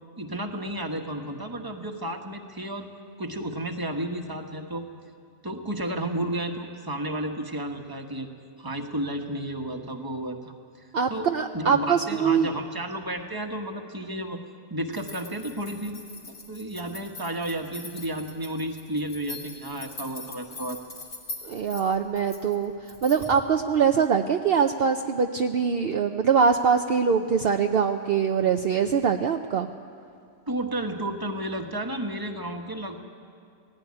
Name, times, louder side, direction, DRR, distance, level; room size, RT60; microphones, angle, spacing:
voice 1, 0.2-2.8 3.2-4.9 5.4-8.3 8.6-14.4 14.7-16.0 16.5-20.8 30.5-33.0, right 1 dB, 20° right, 4 dB, 1.3 m, -32 dB
voice 2, 10.9-12.5 21.4-22.7 23.0-29.7, right 6 dB, 60° right, 5 dB, 0.8 m, -23 dB
sound 1, 14.9-23.4, left 3 dB, 80° left, 3.4 m, -42 dB
18.5 x 15.5 x 9.7 m, 2.3 s
omnidirectional pair, 1.2 m